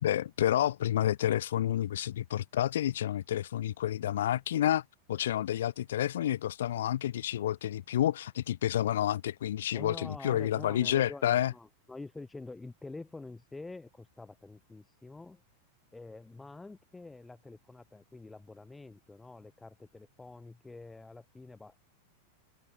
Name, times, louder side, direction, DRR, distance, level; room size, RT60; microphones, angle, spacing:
voice 1, 0.0-4.8 5.1-11.5, left 11 dB, 60° left, 2.4 m, -29 dB
voice 2, 9.7-15.4 15.9-21.8, left 3 dB, 10° left, 7.3 m, -47 dB
figure-of-eight pair, 90°, 0 cm